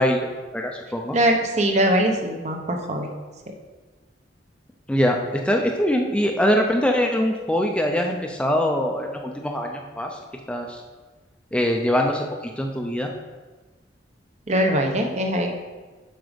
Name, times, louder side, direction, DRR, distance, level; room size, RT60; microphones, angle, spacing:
voice 1, 0.0-1.2 4.9-10.2 10.5-10.8 11.5-13.1, equal, 5° left, 2 dB, 0.6 m, -23 dB
voice 2, 1.1-3.1 14.5-15.5, right 1 dB, 40° right, 3 dB, 0.9 m, -22 dB
7.7 x 6.0 x 5.2 m, 1.3 s
head